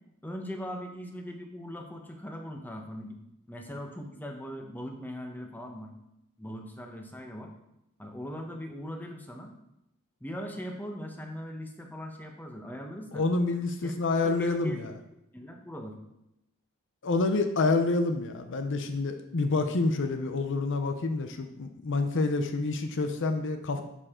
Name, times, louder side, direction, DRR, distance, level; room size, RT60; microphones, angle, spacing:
voice 1, 0.2-3.2 3.5-5.9 6.4-7.5 8.0-9.5 10.2-13.2 13.8-13.9 14.2-14.9 15.3-15.9, equal, 10° left, 2 dB, 1.0 m, -40 dB
voice 2, 13.1-14.9 17.0-23.8, left 3 dB, 60° left, 7 dB, 0.6 m, -28 dB
11.0 x 4.8 x 3.7 m, 0.85 s
head